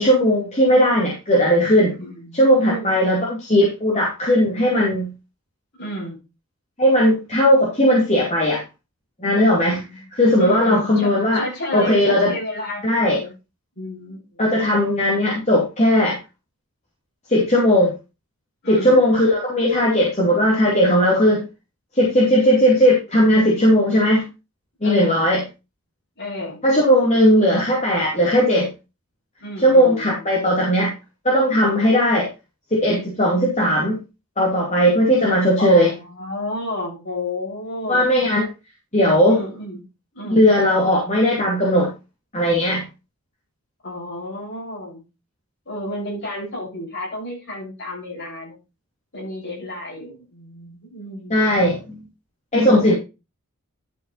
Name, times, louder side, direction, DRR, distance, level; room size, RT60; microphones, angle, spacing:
voice 1, 0.0-1.9 2.3-5.1 6.8-8.6 9.2-9.8 10.1-11.4 11.7-12.3 12.8-13.2 14.4-16.2 17.3-17.9 18.7-21.4 21.9-24.2 24.8-25.4 26.6-28.7 29.6-30.9 31.2-32.3 32.7-34.0 34.4-35.9 37.9-38.5 38.9-39.4 40.3-41.9 42.3-42.8 51.3-52.0 52.5-52.9, equal, 30° left, -4 dB, 2.6 m, -17 dB
voice 2, 1.9-3.2 5.8-6.2 9.6-10.1 10.4-13.3 13.8-14.7 18.6-19.0 24.8-25.3 26.2-26.6 29.4-30.2 35.6-38.0 39.2-39.9 40.1-40.5 43.8-45.0 45.7-48.6 49.1-51.4 52.5-53.0, left 1 dB, 55° left, -3 dB, 7.0 m, -31 dB
11.5 x 5.8 x 4.2 m, 0.28 s
head